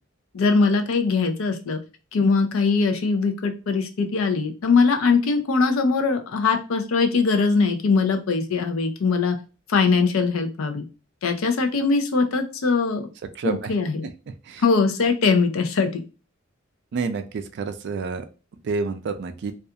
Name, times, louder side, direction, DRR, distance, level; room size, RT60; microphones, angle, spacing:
voice 1, 0.3-1.8 2.1-9.4 9.7-10.8 11.2-13.0 13.4-14.1 14.6-16.0, left 4 dB, 80° left, 6 dB, 0.5 m, -21 dB
voice 2, 16.9-18.2 18.6-19.5, right 4 dB, 55° right, 9 dB, 0.3 m, -28 dB
2.3 x 2.3 x 2.7 m, 0.33 s
head